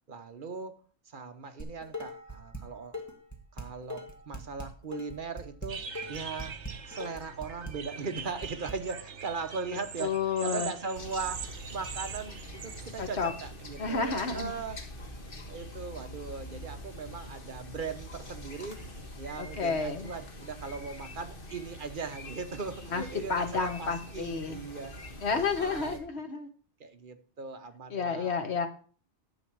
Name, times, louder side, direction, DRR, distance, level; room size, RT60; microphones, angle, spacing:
voice 1, 0.1-0.8 1.1-3.0 3.5-6.6 6.9-10.1 10.4-14.8 15.5-18.8 19.2-25.0 25.4-26.0 26.8-28.4, right 4 dB, 50° right, 8 dB, 1.1 m, -39 dB
Dishes pots and pans, 1.6-2.6 2.9-8.7, equal, 15° left, 1.9 m, -41 dB
sound 1, 5.7-13.3, right 6 dB, 85° right, 1.4 m, -42 dB
voice 2, 10.0-10.7 13.0-13.3 13.8-14.5 19.4-20.1 22.9-23.0 23.3-24.6 25.2-26.5 27.9-28.7, left 5 dB, 70° left, 7 dB, 1.5 m, -30 dB
sound 2, 10.9-26.0, left 1 dB, 50° left, 1.7 m, -44 dB
11.0 x 7.6 x 4.6 m, 0.42 s
omnidirectional pair, 1.2 m